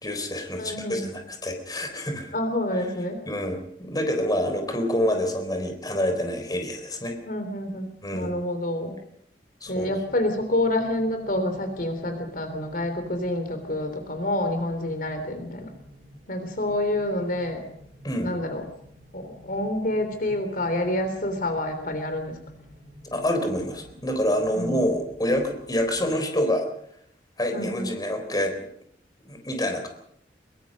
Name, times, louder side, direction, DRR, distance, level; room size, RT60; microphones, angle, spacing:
voice 1, 0.0-2.3 3.3-7.2 8.0-8.3 9.6-9.9 18.0-18.3 23.1-26.7 27.4-28.5 29.2-29.9, left 1 dB, 20° left, 5 dB, 4.0 m, -27 dB
voice 2, 0.6-1.1 2.3-3.2 7.2-7.9 8.1-9.0 9.7-15.7 16.3-17.6 18.2-18.6 19.1-22.4 24.5-24.8 27.5-27.9, left 1 dB, 55° left, 7 dB, 3.4 m, -28 dB
sound 1, 9.6-26.2, equal, 45° right, 3.6 m, -50 dB
23.5 x 23.0 x 5.4 m, 0.71 s
head